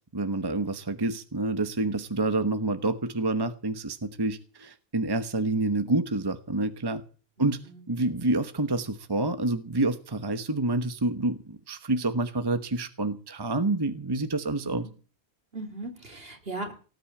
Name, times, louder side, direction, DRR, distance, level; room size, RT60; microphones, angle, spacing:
voice 1, 0.1-7.0 7.4-7.6 7.9-14.9, right 2 dB, 25° right, 10 dB, 1.1 m, -28 dB
voice 2, 7.4-7.8 14.6-14.9 15.5-16.7, right 2 dB, 65° right, 4 dB, 3.4 m, -38 dB
18.5 x 8.7 x 8.7 m, 0.39 s
omnidirectional pair, 1.1 m